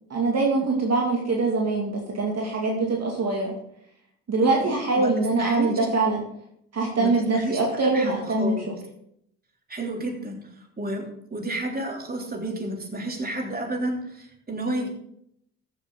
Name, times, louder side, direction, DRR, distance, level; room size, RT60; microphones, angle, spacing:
voice 1, 0.1-3.5 4.3-6.2 6.7-8.7, right 3 dB, 40° right, -1 dB, 2.4 m, -23 dB
voice 2, 4.4-5.8 7.0-8.7 9.7-10.4 10.8-14.9, right 1 dB, 25° right, 1 dB, 3.2 m, -31 dB
14.0 x 7.2 x 3.9 m, 0.73 s
hypercardioid pair, 50°, 39 cm